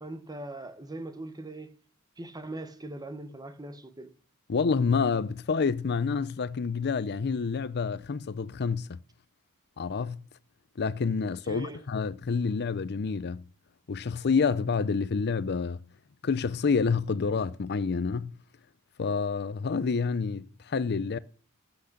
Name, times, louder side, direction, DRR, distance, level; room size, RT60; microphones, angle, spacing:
voice 1, 0.0-1.7 2.2-4.1 11.4-11.8, right 2 dB, 15° right, 1.0 m, -40 dB
voice 2, 4.5-9.0 9.8-10.2 10.8-13.4 13.9-15.8 16.2-18.3 19.0-21.2, left 5 dB, 50° left, 0.5 m, -28 dB
14.0 x 6.0 x 6.6 m
head